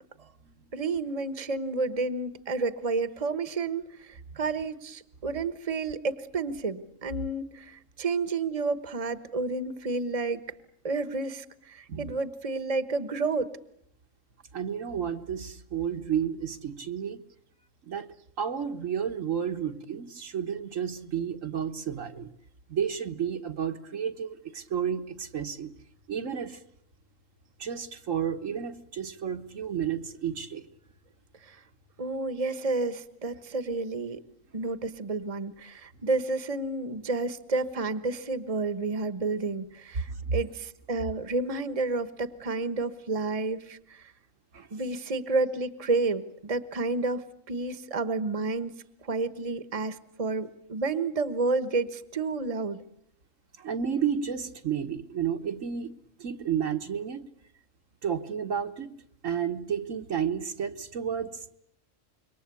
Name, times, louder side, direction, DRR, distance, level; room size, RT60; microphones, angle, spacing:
voice 1, 0.7-10.4 10.8-13.5 31.4-31.6 32.0-34.2 34.5-44.1 44.7-52.8, right 3 dB, 30° right, 13 dB, 1.2 m, -30 dB
voice 2, 14.5-17.2 17.8-22.3 22.7-25.7 26.1-26.6 27.6-30.6 40.1-40.4 44.5-44.7 53.6-55.9 56.2-57.3 58.0-59.0 59.2-61.3, right 8 dB, 75° right, 5 dB, 1.8 m, -31 dB
27.0 x 23.5 x 8.4 m, 0.69 s
omnidirectional pair, 1.4 m